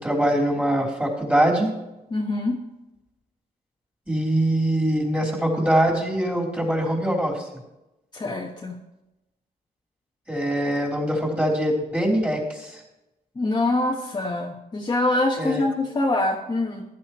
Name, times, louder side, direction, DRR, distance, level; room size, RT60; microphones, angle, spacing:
voice 1, 0.0-1.7 4.1-7.4 10.3-12.8 15.4-15.6, right 1 dB, 10° right, -2 dB, 3.6 m, -23 dB
voice 2, 2.1-2.6 8.1-8.7 13.3-16.8, left 2 dB, 30° left, -1 dB, 1.3 m, -24 dB
15.0 x 11.0 x 3.1 m, 0.95 s
cardioid pair, 100°, 16 cm